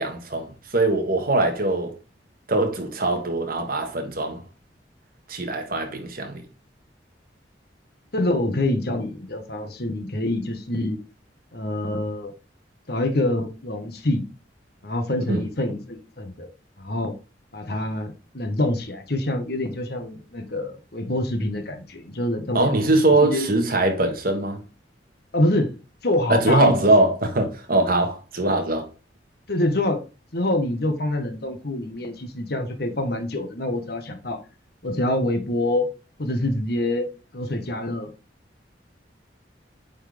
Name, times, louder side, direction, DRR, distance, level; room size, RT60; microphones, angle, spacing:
voice 1, 0.0-1.9 2.5-4.4 5.3-6.4 15.3-15.5 22.5-24.6 26.3-28.9, right 2 dB, 55° right, 1.7 m, -22 dB
voice 2, 8.1-11.0 11.5-12.3 12.9-14.2 14.8-16.5 16.8-17.1 17.5-22.6 23.2-23.5 25.3-25.7 26.0-26.8 29.5-30.0 30.3-34.4 34.8-35.9 36.2-37.1 37.3-38.1, left 1 dB, 60° left, 1.5 m, -25 dB
8.7 x 4.3 x 3.6 m
head